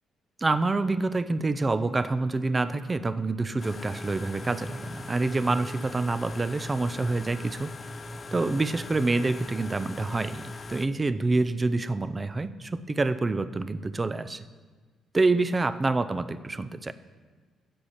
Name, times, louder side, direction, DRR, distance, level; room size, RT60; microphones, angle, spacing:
voice 1, 0.4-7.7 8.3-14.5 15.1-16.9, right 3 dB, 25° right, 13 dB, 0.5 m, -27 dB
sound 1, 3.6-10.9, left 2 dB, 35° left, 0.5 m, -40 dB
7.7 x 6.5 x 7.2 m, 1.4 s
cardioid pair, 90°, 0 cm